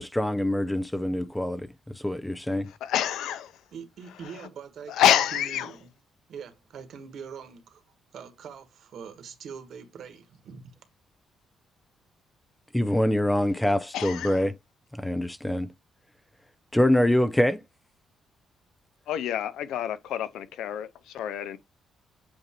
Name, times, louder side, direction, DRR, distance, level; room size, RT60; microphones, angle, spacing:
voice 1, 0.0-1.7 2.0-2.7 12.7-14.5 14.9-15.7 16.7-17.6, left 1 dB, 5° left, 0.4 m, -24 dB
voice 2, 2.7-3.5 4.9-5.7 13.9-14.4 19.1-21.6, left 11 dB, 85° left, 0.7 m, -27 dB
voice 3, 3.7-5.9 6.3-7.8 8.1-10.7, right 6 dB, 60° right, 1.4 m, -43 dB
7.8 x 2.7 x 4.3 m
cardioid pair, 160°, 0 cm